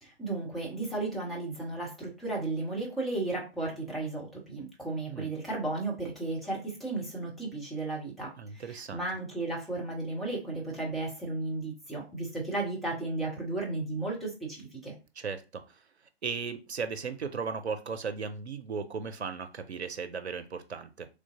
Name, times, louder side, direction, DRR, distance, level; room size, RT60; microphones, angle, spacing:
voice 1, 0.0-14.9, right 2 dB, ahead, 0.5 m, -34 dB
voice 2, 8.4-9.0 15.2-15.8 16.2-21.1, right 5 dB, 80° right, 0.6 m, -36 dB
3.2 x 2.5 x 3.5 m
figure-of-eight pair, 120°, 33 cm